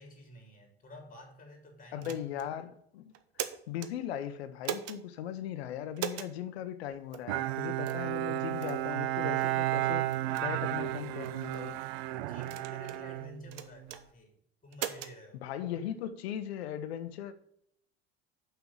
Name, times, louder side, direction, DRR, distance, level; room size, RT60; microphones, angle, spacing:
voice 1, 0.0-2.4 8.6-8.8 12.1-15.4, left 1 dB, 25° left, 3.3 m, -51 dB
voice 2, 1.9-3.1 3.4-11.8 15.4-17.3, left 10 dB, 80° left, 1.0 m, -38 dB
sound 1, 2.0-2.5 3.1-3.9 4.6-5.0 6.0-6.3 7.1-7.3 7.9-8.1 8.6-8.8 9.4-9.5 10.1-10.5 11.2-11.6 12.4-13.0 13.5-14.0 14.7-15.1, right 11 dB, 50° right, 0.9 m, -39 dB
Bowed string instrument, 7.3-14.0, right 15 dB, 75° right, 0.6 m, -33 dB
6.0 x 5.8 x 7.1 m
hypercardioid pair, 90°, 31 cm